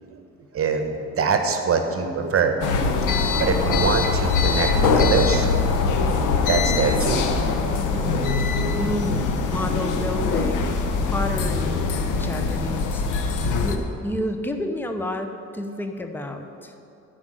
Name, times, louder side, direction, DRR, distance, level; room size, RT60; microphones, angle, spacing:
voice 1, 0.5-2.6 3.1-5.5 5.9-6.0 6.5-7.5 7.9-8.3, right 5 dB, 50° right, 5 dB, 1.1 m, -24 dB
sound 1, 2.6-13.8, left 4 dB, 90° left, 0.9 m, -22 dB
voice 2, 8.0-11.9 12.1-13.0 13.6-16.7, left 1 dB, 5° left, 5 dB, 0.8 m, -30 dB
10.5 x 5.1 x 7.6 m, 2.6 s
cardioid pair, 90°, 30 cm